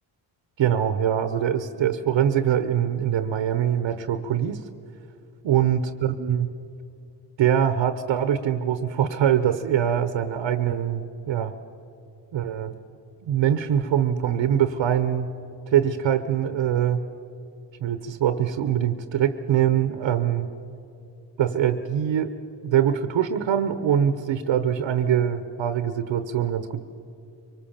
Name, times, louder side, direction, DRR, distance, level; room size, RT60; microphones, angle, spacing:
voice 1, 0.6-4.6 5.4-6.5 7.4-11.5 12.3-12.8 13.3-15.3 15.7-17.0 17.8-20.5 21.4-22.3 22.6-26.8, right 9 dB, 80° right, 10 dB, 1.0 m, -23 dB
24.0 x 19.0 x 7.3 m, 2.6 s
cardioid pair, 70°, 45 cm